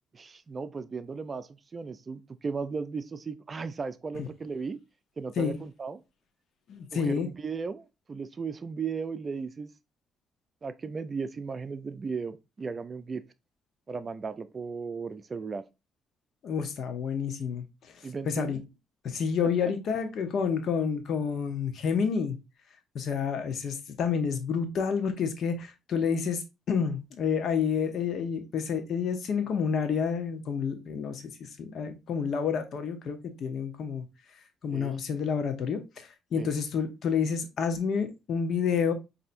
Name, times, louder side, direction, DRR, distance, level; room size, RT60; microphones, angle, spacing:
voice 1, 0.1-4.8 5.2-6.0 6.9-9.7 10.6-13.2 13.9-15.6 18.0-18.6 19.6-19.7 34.7-35.0 36.4-36.5, right 5 dB, 35° right, 0.4 m, -36 dB
voice 2, 6.7-7.3 16.4-17.6 18.3-18.6 19.0-22.4 22.9-34.0 34.6-38.9, left 6 dB, 65° left, 0.8 m, -29 dB
5.4 x 2.7 x 2.6 m
cardioid pair, 75°, 0 cm